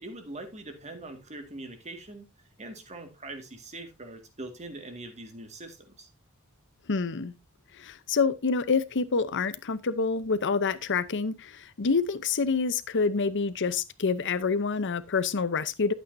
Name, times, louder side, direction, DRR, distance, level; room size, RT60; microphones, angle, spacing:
voice 1, 0.0-2.3 2.6-6.1, right 2 dB, 30° right, 2.0 m, -42 dB
voice 2, 6.9-7.3 7.7-15.9, left 4 dB, 55° left, 0.8 m, -27 dB
12.0 x 8.5 x 2.7 m
head